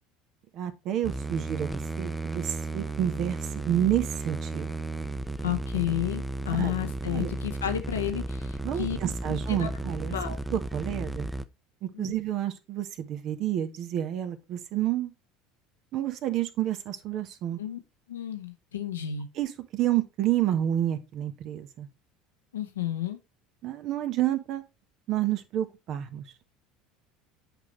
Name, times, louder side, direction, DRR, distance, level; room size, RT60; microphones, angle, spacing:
voice 1, 0.5-3.4 3.6-4.7 6.5-6.7 7.1-7.3 8.6-10.1 10.5-11.3 11.8-15.1 15.9-17.6 19.3-21.9 23.6-24.6 25.1-26.2, right 12 dB, 55° right, 1.2 m, -29 dB
sound 1, 1.0-11.4, right 2 dB, 5° right, 0.7 m, -34 dB
voice 2, 5.4-9.0 9.3-9.7 10.1-10.4 11.9-12.1 17.6-17.8 18.1-19.3 22.5-23.2, left 11 dB, 85° left, 0.9 m, -31 dB
8.2 x 5.0 x 3.2 m
hypercardioid pair, 70°, 0 cm